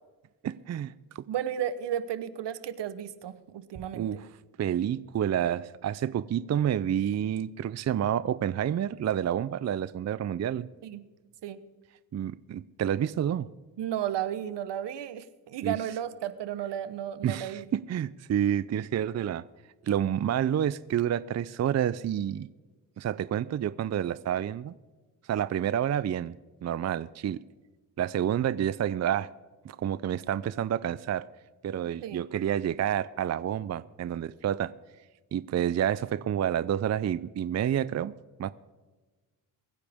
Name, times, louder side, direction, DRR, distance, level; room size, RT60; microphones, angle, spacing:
voice 1, 0.4-1.2 3.9-4.3 4.6-10.7 12.1-13.5 15.6-15.8 17.2-19.4 19.8-22.5 23.0-24.7 25.3-26.3 26.6-27.4 28.0-29.3 29.6-31.3 31.6-34.7 35.3-38.1 38.4-38.5, right 10 dB, 40° right, 16 dB, 0.5 m, -29 dB
voice 2, 1.3-4.2 10.8-11.0 11.4-11.6 13.8-17.6 32.0-32.2, right 10 dB, 75° right, 14 dB, 1.1 m, -33 dB
23.5 x 9.8 x 3.6 m, 1.3 s
cardioid pair, 70°, 43 cm